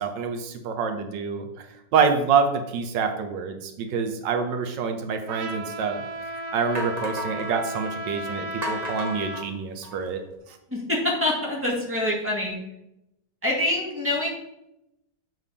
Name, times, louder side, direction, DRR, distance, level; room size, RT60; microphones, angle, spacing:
voice 1, 0.0-1.5 1.9-6.0 6.5-10.2, right 5 dB, 85° right, 6 dB, 1.5 m, -26 dB
Trumpet, 5.3-9.5, right 1 dB, 70° right, 1.2 m, -34 dB
sound 1, 6.1-6.2 6.7-7.5 8.6-10.1, equal, 25° right, 1.2 m, -34 dB
voice 2, 10.7-12.6 13.4-14.3, left 1 dB, 5° right, -4 dB, 2.0 m, -25 dB
7.5 x 5.9 x 3.6 m, 0.85 s
omnidirectional pair, 1.9 m